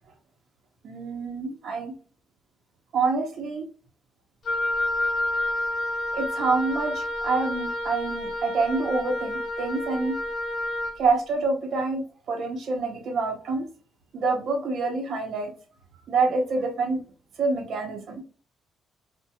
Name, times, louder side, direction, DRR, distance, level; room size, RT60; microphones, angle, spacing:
voice 1, 0.8-1.9 2.9-3.6 6.1-10.2 11.0-13.7 14.1-15.5 16.1-17.0 17.4-18.2, right 3 dB, 65° right, 3 dB, 0.7 m, -27 dB
Wind instrument woodwind instrument, 4.5-11.0, left 1 dB, 55° left, 0.7 m, -29 dB
2.7 x 2.1 x 2.2 m, 0.40 s
cardioid pair, 90°, 0 cm